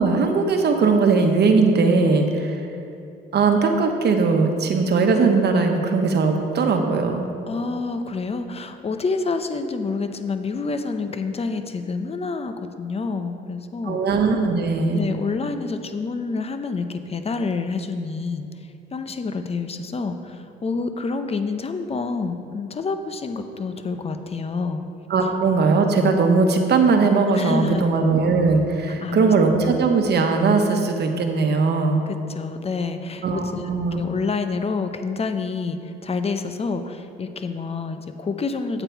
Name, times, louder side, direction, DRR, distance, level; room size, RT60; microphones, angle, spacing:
voice 1, 0.0-2.6 3.3-7.3 13.9-15.0 25.1-32.0 33.2-34.0, right 4 dB, 55° right, 4 dB, 1.1 m, -19 dB
voice 2, 7.5-14.0 14.9-18.5 18.9-24.8 27.3-27.9 29.0-29.3 32.1-38.8, left 4 dB, 30° left, 8 dB, 0.7 m, -28 dB
8.6 x 8.0 x 4.6 m, 2.6 s
cardioid pair, 90°, 20 cm